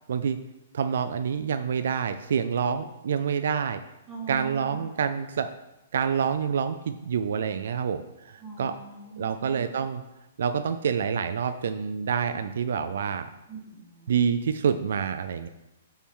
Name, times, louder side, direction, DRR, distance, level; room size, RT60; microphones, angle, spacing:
voice 1, 0.7-3.8 4.3-5.5 5.9-8.7 9.2-10.0 10.4-13.3 14.1-15.5, right 7 dB, 65° right, 10 dB, 0.3 m, -27 dB
voice 2, 4.1-4.9 8.4-9.7 13.5-14.1, right 5 dB, 5° right, -5 dB, 1.5 m, -41 dB
8.4 x 4.6 x 3.7 m, 0.95 s
hypercardioid pair, 170°, 0 cm